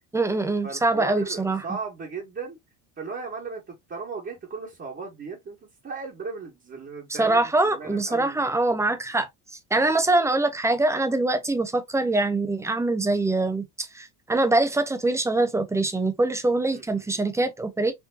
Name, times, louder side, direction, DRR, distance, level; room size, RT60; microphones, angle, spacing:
voice 1, 0.1-1.6 7.2-9.3 9.7-17.9, right 2 dB, 5° right, 0.3 m, -23 dB
voice 2, 0.6-2.6 3.0-8.5 16.7-17.2, right 4 dB, 25° right, 1.1 m, -36 dB
4.6 x 2.5 x 2.3 m
supercardioid pair, 105°, 48 cm